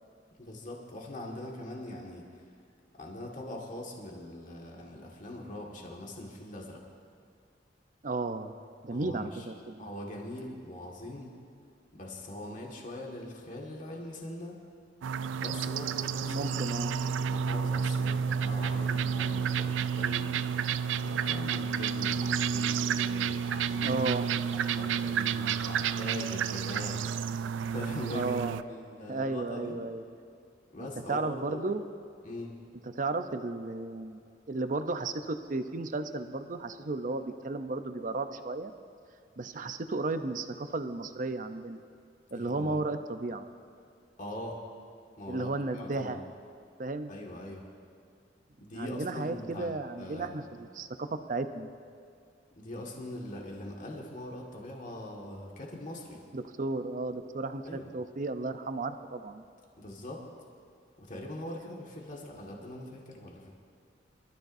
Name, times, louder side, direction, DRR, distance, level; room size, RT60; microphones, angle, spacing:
voice 1, 0.4-2.5 2.9-6.8 8.9-9.5 9.8-11.3 11.9-14.6 15.4-16.6 17.3-24.0 24.4-27.1 27.7-28.3 28.7-29.8 30.7-31.6 32.2-32.6 42.3-42.8 44.2-44.6 45.2-46.2 47.1-47.7 48.6-49.7 50.0-50.4 52.6-56.2 57.6-57.9 59.8-60.2 61.0-63.5, left 1 dB, 45° left, -2 dB, 1.8 m, -42 dB
voice 2, 8.0-8.6 8.8-9.9 16.3-17.0 23.8-24.3 28.1-28.6 29.1-30.0 31.1-31.9 32.9-34.2 34.5-38.7 39.4-41.8 42.3-43.5 45.3-46.2 46.8-47.1 48.8-51.7 56.3-59.4, right 3 dB, 45° right, 9 dB, 0.6 m, -34 dB
sound 1, 15.0-28.6, right 7 dB, 90° right, 0.4 m, -30 dB
25.0 x 13.0 x 2.7 m, 2.3 s
head